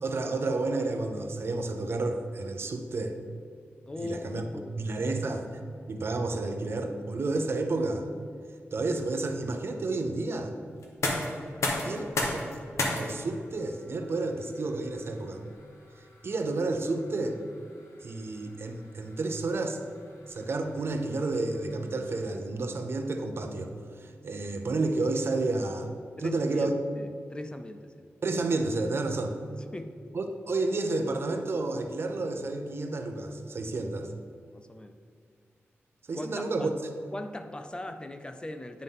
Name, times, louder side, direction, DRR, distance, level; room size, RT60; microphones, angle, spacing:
voice 1, 0.0-3.1 4.0-4.5 4.8-5.5 5.9-8.1 8.7-10.5 11.8-12.4 12.9-15.4 16.2-17.4 18.0-19.8 20.3-23.7 24.0-25.9 26.2-26.7 28.2-29.4 30.1-34.1 36.1-36.7, right 2 dB, 55° right, 5 dB, 0.6 m, -30 dB
voice 2, 3.9-4.9 11.8-12.4 26.2-28.1 29.7-30.0 34.5-35.0 36.1-36.7 37.1-38.8, left 1 dB, 20° left, 8 dB, 0.4 m, -40 dB
sound 1, 10.8-22.6, left 2 dB, 80° left, 1.1 m, -37 dB
9.6 x 3.7 x 5.4 m, 2.2 s
wide cardioid pair, 95°, 5 cm